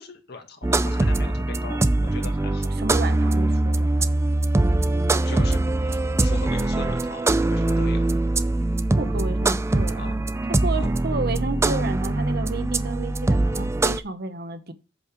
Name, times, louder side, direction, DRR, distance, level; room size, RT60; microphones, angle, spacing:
voice 1, 0.0-2.7 5.2-5.6 6.2-8.1 9.9-10.1 10.7-10.9, left 3 dB, 55° left, 1.7 m, -39 dB
sound 1, 0.6-14.0, right 2 dB, 15° right, 0.4 m, -22 dB
voice 2, 2.8-4.1 9.0-10.1 10.5-14.7, right 3 dB, 55° right, 0.9 m, -31 dB
8.0 x 5.4 x 4.5 m
head